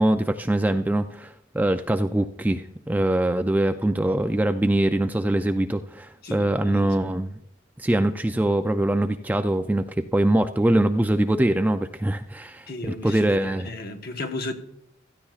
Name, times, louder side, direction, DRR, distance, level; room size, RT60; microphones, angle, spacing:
voice 1, 0.0-7.4 7.8-9.8 10.1-13.7, right 1 dB, 10° right, 0.3 m, -23 dB
voice 2, 6.2-7.0 12.7-14.5, left 2 dB, 50° left, 1.2 m, -35 dB
16.5 x 13.5 x 2.4 m
head